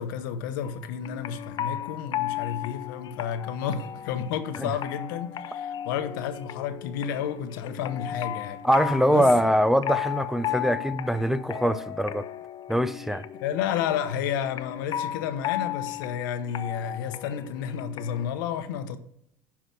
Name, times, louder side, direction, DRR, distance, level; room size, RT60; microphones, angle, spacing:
voice 1, 0.0-8.6 9.1-9.3 13.4-19.0, left 8 dB, 85° left, 1.0 m, -31 dB
sound 1, 0.6-18.3, left 12 dB, 45° left, 0.6 m, -35 dB
voice 2, 8.6-12.3 12.7-13.2, equal, 5° right, 0.6 m, -23 dB
Mallet percussion, 9.9-12.1, left 3 dB, 70° right, 4.1 m, -49 dB
10.5 x 4.9 x 5.9 m
supercardioid pair, 100°, 11 cm